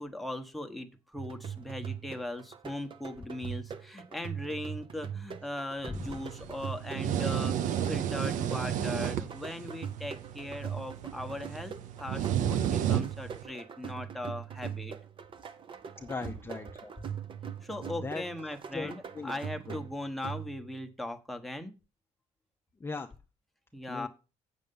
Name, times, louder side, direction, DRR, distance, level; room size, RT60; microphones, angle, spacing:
voice 1, 0.0-14.9 17.6-21.7 23.7-24.1, left 1 dB, ahead, 5 dB, 1.1 m, -39 dB
sound 1, 1.2-20.8, right 7 dB, 40° right, 0.9 m, -42 dB
voice 2, 5.9-6.2 16.0-16.9 18.0-18.2 18.7-19.3 19.7-19.8 22.8-23.1 23.9-24.1, left 3 dB, 20° left, 4 dB, 0.6 m, -38 dB
sound 2, 5.9-13.4, right 10 dB, 85° right, 0.7 m, -32 dB
8.0 x 6.8 x 5.4 m, 0.31 s
cardioid pair, 125°, 13 cm